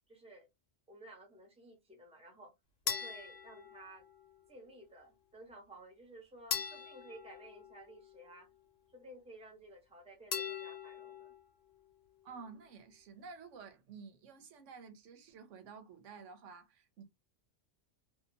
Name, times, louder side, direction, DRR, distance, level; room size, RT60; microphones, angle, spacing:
voice 1, 0.1-0.5 0.9-2.5 2.8-4.0 4.5-8.5 8.9-11.3, right 1 dB, 5° right, 0.7 m, -54 dB
sound 1, 2.9-4.4 6.5-8.3 10.3-11.4, left 7 dB, 65° left, 0.9 m, -41 dB
voice 2, 12.2-17.0, right 5 dB, 90° right, 1.1 m, -52 dB
2.8 x 2.2 x 2.6 m
omnidirectional pair, 1.2 m